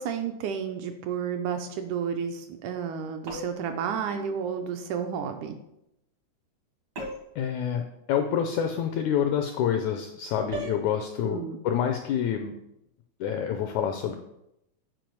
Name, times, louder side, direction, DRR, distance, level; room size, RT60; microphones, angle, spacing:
voice 1, 0.0-5.6 11.2-11.6, right 7 dB, 80° right, 5 dB, 1.9 m, -31 dB
sound 1, 3.3-3.7 7.0-7.4 10.5-10.9, right 1 dB, 60° right, 1.0 m, -36 dB
voice 2, 7.3-12.5 13.2-14.2, left 8 dB, 85° left, 6 dB, 1.6 m, -27 dB
9.2 x 4.6 x 4.6 m, 0.83 s
omnidirectional pair, 3.9 m